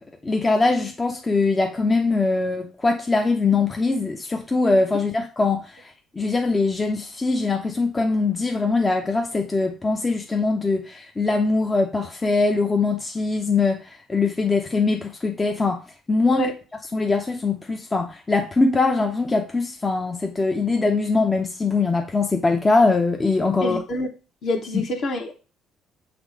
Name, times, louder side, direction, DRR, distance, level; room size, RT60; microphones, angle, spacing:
voice 1, 0.2-13.8 14.1-15.8 16.1-16.5 16.9-23.8 24.7-24.8, left 3 dB, 20° left, 0.7 m, -22 dB
voice 2, 23.6-24.1 24.4-25.3, left 1 dB, 50° left, 1.3 m, -26 dB
6.1 x 3.1 x 5.1 m
figure-of-eight pair, 50°, 0 cm